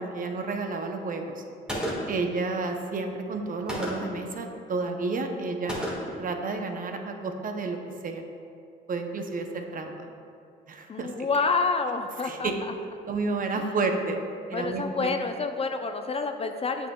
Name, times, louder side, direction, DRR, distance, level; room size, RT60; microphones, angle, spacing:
voice 1, 0.0-1.4 2.1-5.8 6.2-7.8 8.0-8.2 8.9-10.1 10.7-11.3 12.2-12.6 13.1-14.2 14.5-15.1, right 3 dB, 45° right, 5 dB, 0.6 m, -31 dB
Gunshot gunfire, 1.7-2.3 3.7-4.2 5.7-6.3, equal, 5° right, 1.5 m, -32 dB
voice 2, 10.9-12.5 13.6-13.7 14.5-16.9, left 4 dB, 30° left, 6 dB, 0.4 m, -28 dB
8.3 x 5.4 x 2.2 m, 2.5 s
cardioid pair, 90°, 20 cm